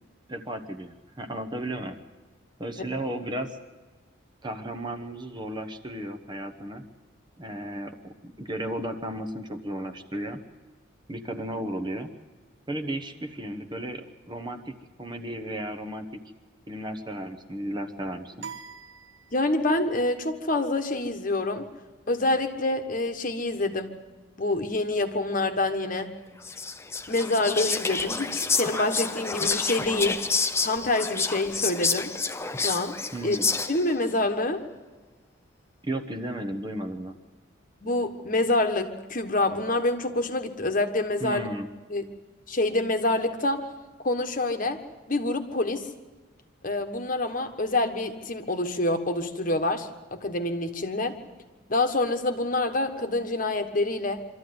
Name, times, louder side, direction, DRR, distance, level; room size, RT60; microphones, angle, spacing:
voice 1, 0.3-2.0 2.6-3.6 4.4-6.9 7.4-10.4 11.1-12.1 12.7-16.2 16.7-18.5 33.1-33.5 35.8-37.1 41.2-41.7, right 1 dB, 20° right, 8 dB, 1.0 m, -34 dB
sound 1, 18.4-19.9, right 6 dB, 60° right, 1.4 m, -43 dB
voice 2, 19.3-21.7 22.1-23.9 24.4-26.1 27.1-30.2 30.6-32.1 32.6-32.9 33.2-33.4 33.7-34.6 37.8-41.5 41.9-42.0 42.5-43.6 44.0-44.8 45.1-45.9 46.6-51.1 51.7-54.2, left 2 dB, 40° left, 6 dB, 1.3 m, -26 dB
Whispering, 26.4-34.0, left 4 dB, 15° left, 0.7 m, -29 dB
25.0 x 13.5 x 9.5 m, 1.3 s
head